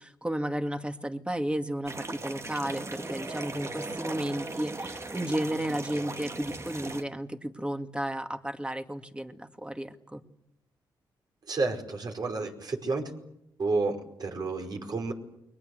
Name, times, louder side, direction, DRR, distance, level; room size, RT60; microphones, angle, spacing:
voice 1, 0.0-10.2, right 1 dB, 10° right, 7 dB, 2.4 m, -33 dB
sound 1, 1.9-7.0, right 2 dB, 35° right, 2.2 m, -38 dB
voice 2, 11.5-13.1 13.6-15.1, right 3 dB, 50° right, 3 dB, 5.1 m, -30 dB
29.5 x 21.5 x 8.0 m, 0.80 s
cardioid pair, 60°, 9 cm